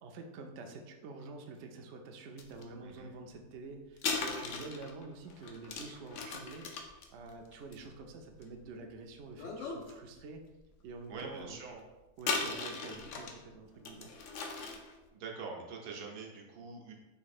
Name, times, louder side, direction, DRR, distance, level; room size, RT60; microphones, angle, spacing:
voice 1, 0.0-10.4 10.8-11.6 12.2-14.1, right 3 dB, 65° right, 3 dB, 0.7 m, -47 dB
sound 1, 2.4-2.6 4.0-8.7 9.3-9.9 10.3-10.4 12.2-13.4 13.8-14.9, left 4 dB, 65° left, 0.9 m, -38 dB
voice 2, 2.8-3.1 11.1-11.8 15.1-16.9, right 4 dB, 85° right, 0 dB, 1.3 m, -44 dB
4.0 x 2.7 x 4.1 m, 1.1 s
omnidirectional pair, 1.6 m